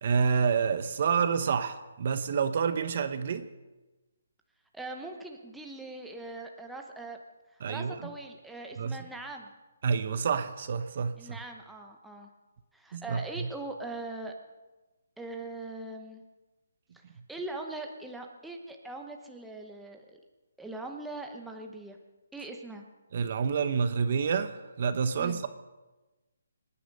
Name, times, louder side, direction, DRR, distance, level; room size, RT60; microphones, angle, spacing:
voice 1, 0.0-3.5 7.6-8.0 8.8-9.0 9.8-11.4 12.9-13.5 23.1-25.5, right 6 dB, 45° right, 11 dB, 0.9 m, -28 dB
voice 2, 4.7-7.2 7.7-9.5 11.2-12.3 12.7-14.3 15.2-16.2 17.3-20.2 20.6-22.0 22.3-22.8 25.2-25.4, right 2 dB, ahead, 2 dB, 0.9 m, -41 dB
25.5 x 10.0 x 5.4 m, 1.1 s
hypercardioid pair, 170°, 0 cm